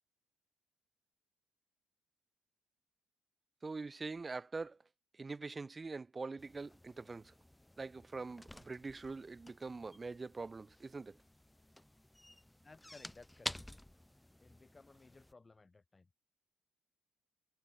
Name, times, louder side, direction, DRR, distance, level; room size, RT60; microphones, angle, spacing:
voice 1, 3.6-4.8 5.2-7.3 7.8-11.2, right 3 dB, 30° right, 0.6 m, -44 dB
sound 1, 6.4-15.3, left 1 dB, 10° left, 3.3 m, -51 dB
voice 2, 12.6-13.5 14.4-16.1, left 3 dB, 25° left, 6.7 m, -59 dB
hypercardioid pair, 55°, 0 cm